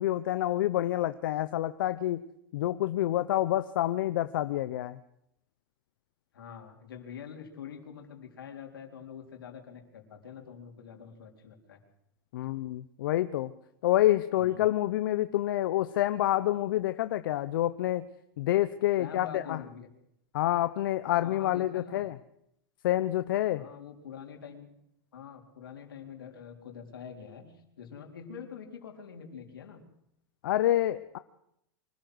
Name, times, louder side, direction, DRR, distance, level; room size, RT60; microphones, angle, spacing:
voice 1, 0.0-2.2 2.5-5.0 12.3-13.5 13.8-18.1 18.4-19.6 20.3-22.1 22.8-23.6 30.4-31.2, left 14 dB, 70° left, 11 dB, 0.9 m, -28 dB
voice 2, 6.3-11.8 14.4-14.7 19.0-19.9 21.2-22.0 23.5-24.7 25.1-29.8, left 7 dB, 90° left, 3 dB, 4.1 m, -45 dB
24.5 x 13.5 x 8.0 m, 0.76 s
hypercardioid pair, 120°, 12 cm